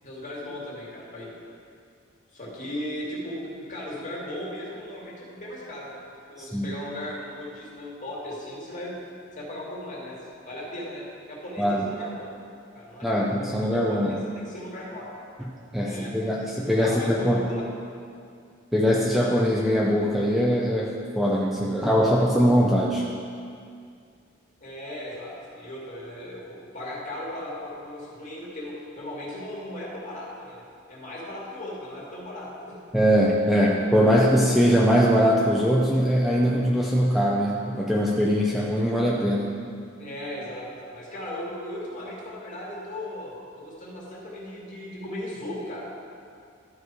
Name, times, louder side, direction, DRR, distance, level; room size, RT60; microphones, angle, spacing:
voice 1, 0.0-1.3 2.3-6.0 6.3-8.9 9.4-12.3 12.7-15.1 15.8-16.1 16.8-17.7 24.6-30.6 30.9-32.8 33.5-33.6 34.0-34.2 40.0-40.7 40.9-45.9, left 1 dB, 40° left, -6 dB, 2.2 m, -37 dB
voice 2, 6.4-6.8 11.6-11.9 13.0-14.3 15.7-17.4 18.7-23.1 32.9-39.5, equal, ahead, -3 dB, 0.5 m, -22 dB
12.5 x 4.7 x 4.8 m, 2.3 s
head